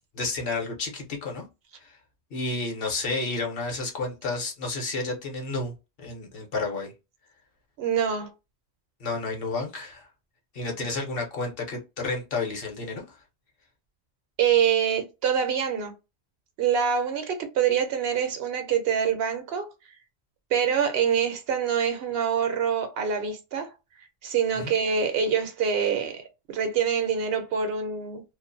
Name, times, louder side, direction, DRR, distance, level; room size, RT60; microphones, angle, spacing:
voice 1, 0.1-1.4 1.8-2.0 2.3-6.9 9.0-10.1 10.5-13.2 24.5-24.8, left 3 dB, 60° left, 0.9 m, -31 dB
voice 2, 7.8-8.3 14.4-15.9 16.6-19.7 20.5-23.7 24.2-28.2, right 7 dB, 70° right, 0.7 m, -25 dB
2.4 x 2.1 x 2.5 m
omnidirectional pair, 1.1 m